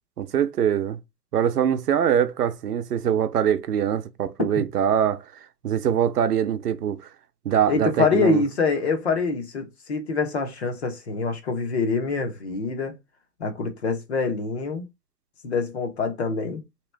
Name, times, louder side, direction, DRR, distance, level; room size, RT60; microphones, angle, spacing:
voice 1, 0.2-1.0 1.3-5.3 5.6-7.1 7.4-8.4, right 9 dB, 65° right, 0.7 m, -23 dB
voice 2, 7.7-12.9 13.4-14.9 15.4-16.6, left 4 dB, 40° left, 0.9 m, -25 dB
3.4 x 3.0 x 3.3 m
hypercardioid pair, 160°, 49 cm